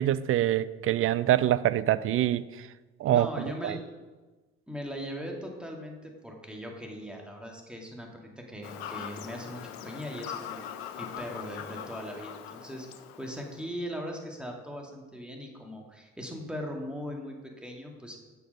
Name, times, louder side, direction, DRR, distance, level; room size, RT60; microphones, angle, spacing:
voice 1, 0.0-2.7 3.0-3.8, right 12 dB, 45° right, 17 dB, 0.4 m, -25 dB
voice 2, 3.1-3.8 4.7-10.7 11.0-18.2, equal, 5° right, 1 dB, 2.2 m, -39 dB
Fowl / Bird vocalization bird call bird song, 8.6-13.6, left 9 dB, 80° left, 0.7 m, -41 dB
7.4 x 6.9 x 5.4 m, 1.2 s
hypercardioid pair, 50°, 31 cm